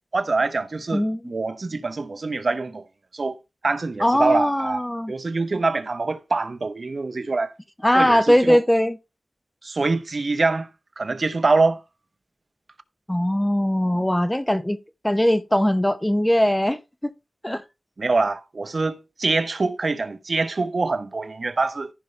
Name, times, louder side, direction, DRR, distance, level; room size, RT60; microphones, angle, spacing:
voice 1, 0.1-2.8 3.1-3.4 3.6-4.8 5.1-7.5 7.9-8.6 9.6-10.7 11.0-11.8 18.0-21.9, right 3 dB, 50° right, 0.9 m, -24 dB
voice 2, 4.0-5.1 7.8-9.0 13.1-14.8 15.0-17.1 17.4-17.6, equal, 10° left, 0.8 m, -20 dB
15.0 x 5.3 x 3.3 m
wide cardioid pair, 90°, 0 cm